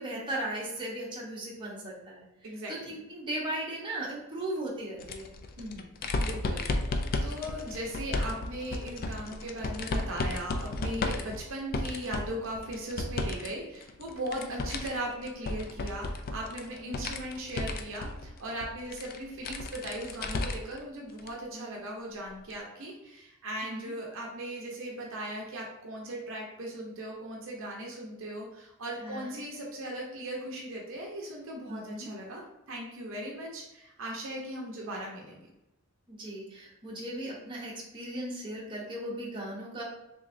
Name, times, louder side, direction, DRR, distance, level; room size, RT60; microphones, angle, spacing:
voice 1, 0.0-2.3 2.7-5.3 14.3-14.6 16.8-17.0 21.5-21.7 23.6-23.9 29.0-29.3 31.7-32.1 36.1-39.8, right 1 dB, 25° right, -5 dB, 0.9 m, -37 dB
voice 2, 2.4-3.0 5.6-5.9 6.2-32.4 32.7-35.5, right 1 dB, 65° right, -1 dB, 0.7 m, -38 dB
sound 1, 5.0-13.5 13.8-20.8 21.2-21.3 22.5-22.6, left 2 dB, 45° left, 0.3 m, -34 dB
3.5 x 3.0 x 2.6 m, 0.93 s
head